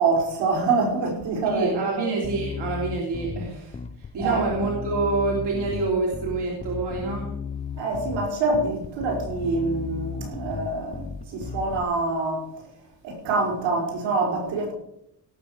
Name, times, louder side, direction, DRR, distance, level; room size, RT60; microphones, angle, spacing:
voice 1, 0.0-2.1 4.2-4.5 7.8-12.5 13.0-14.7, right 3 dB, 85° right, 5.6 m, -25 dB
voice 2, 1.5-3.8 4.1-7.3, right 3 dB, 65° right, 3.1 m, -27 dB
Bass guitar, 2.2-11.8, left 5 dB, 15° left, 0.5 m, -35 dB
17.5 x 7.0 x 6.7 m
cardioid pair, 145°, 43 cm